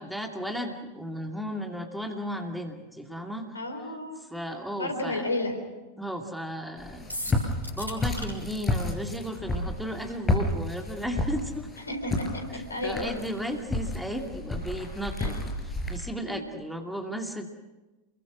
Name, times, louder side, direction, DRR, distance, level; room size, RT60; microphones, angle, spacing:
voice 1, 0.0-3.6 4.2-5.3 6.0-11.7 12.5-15.4 15.6-17.5, equal, ahead, 3 dB, 2.5 m, -35 dB
voice 2, 3.5-4.3 4.8-5.6 11.9-12.4 12.7-13.1 15.2-15.4 16.3-16.5, left 2 dB, 75° left, 6 dB, 4.0 m, -32 dB
Walk footsteps, 6.8-16.0, left 2 dB, 15° left, 5.5 m, -31 dB
sound 1, 7.1-8.3, left 1 dB, 80° right, 5.9 m, -36 dB
28.5 x 22.5 x 6.1 m, 1.1 s
figure-of-eight pair, 90°, 0 cm